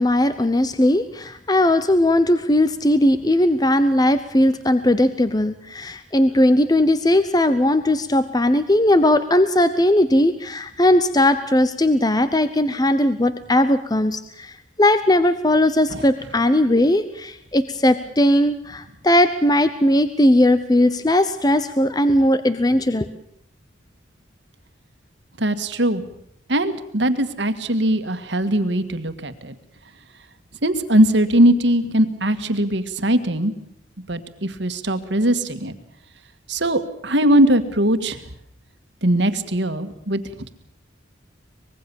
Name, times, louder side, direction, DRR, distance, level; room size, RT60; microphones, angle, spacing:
voice 1, 0.0-14.5 14.8-23.1, left 1 dB, 20° left, 12 dB, 0.9 m, -18 dB
voice 2, 25.4-26.0 26.5-29.5 30.6-33.5 34.1-35.7 36.5-38.2 39.0-40.2, right 1 dB, 60° right, 10 dB, 1.9 m, -20 dB
24.5 x 21.0 x 7.2 m, 0.69 s
head